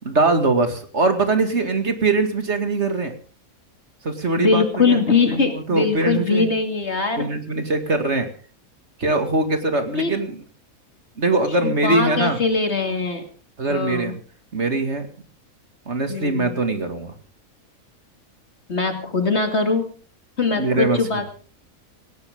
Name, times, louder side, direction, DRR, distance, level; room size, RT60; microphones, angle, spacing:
voice 1, 0.0-3.1 4.0-6.5 7.2-8.3 9.0-10.4 11.2-12.4 13.6-14.2 14.5-15.1 15.9-17.1 20.6-21.2, right 3 dB, 55° right, 7 dB, 2.5 m, -22 dB
voice 2, 4.4-7.3 10.0-10.1 11.6-13.2 13.7-14.1 16.1-16.5 18.7-19.9 20.4-21.3, left 4 dB, 50° left, 5 dB, 2.7 m, -21 dB
18.5 x 17.5 x 3.7 m, 0.39 s
omnidirectional pair, 1.5 m